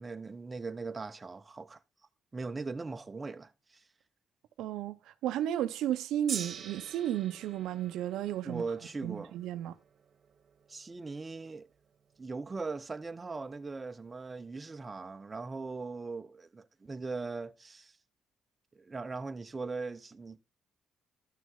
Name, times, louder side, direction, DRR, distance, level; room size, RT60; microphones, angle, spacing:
voice 1, 0.0-1.8 2.3-3.8 8.4-9.3 10.7-11.7 12.2-17.9 18.7-20.4, right 4 dB, 25° right, 0.7 m, -40 dB
voice 2, 4.6-8.6 9.0-9.8, right 11 dB, 90° right, 0.7 m, -33 dB
Gong, 6.3-12.6 13.4-13.5, right 7 dB, 55° right, 1.2 m, -46 dB
12.5 x 6.3 x 3.6 m
cardioid pair, 90°, 0 cm